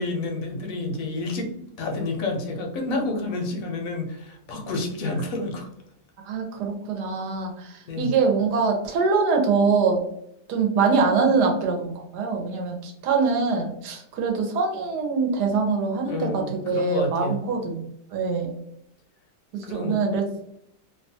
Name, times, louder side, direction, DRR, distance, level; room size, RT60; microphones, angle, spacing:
voice 1, 0.0-1.5 1.8-5.7 7.9-8.2 16.1-17.4 19.6-20.0, left 2 dB, 65° left, 2 dB, 0.9 m, -29 dB
voice 2, 6.2-10.0 10.5-17.9 18.1-18.6 19.5-20.3, right 4 dB, 75° right, 3 dB, 1.2 m, -24 dB
2.9 x 2.2 x 2.7 m, 0.75 s
omnidirectional pair, 1.9 m